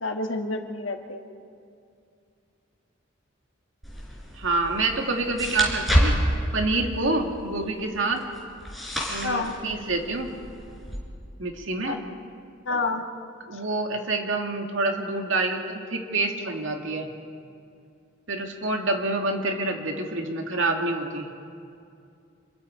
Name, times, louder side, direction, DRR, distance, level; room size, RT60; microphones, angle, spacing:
voice 1, 0.0-1.2 9.2-9.6 11.9-12.0 12.7-13.1, left 3 dB, 80° left, 4 dB, 1.7 m, -29 dB
sound 1, 3.8-11.0, equal, ahead, 4.6 m, -29 dB
voice 2, 4.4-6.1 6.5-8.2 9.1-10.3 11.4-12.0 13.5-17.1 18.3-21.3, right 2 dB, 80° right, 2 dB, 2.3 m, -27 dB
27.5 x 22.0 x 4.7 m, 2.4 s
head